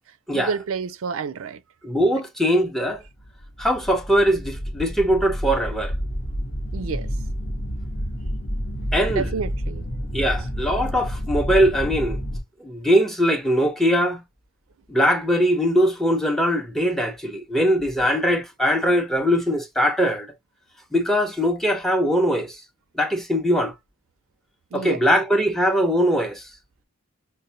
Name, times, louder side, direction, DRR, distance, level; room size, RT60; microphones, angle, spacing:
voice 1, 0.3-1.6 6.7-7.1 9.1-9.8 24.7-25.0, right 5 dB, 70° right, 0.4 m, -29 dB
voice 2, 1.8-3.0 3.6-5.9 8.9-9.4 10.1-12.2 12.6-14.2 14.9-20.3 20.9-22.6 22.9-23.7 24.7-26.5, equal, ahead, 0.5 m, -21 dB
sound 1, 3.2-12.4, equal, 60° left, 0.9 m, -29 dB
5.2 x 2.1 x 2.6 m
head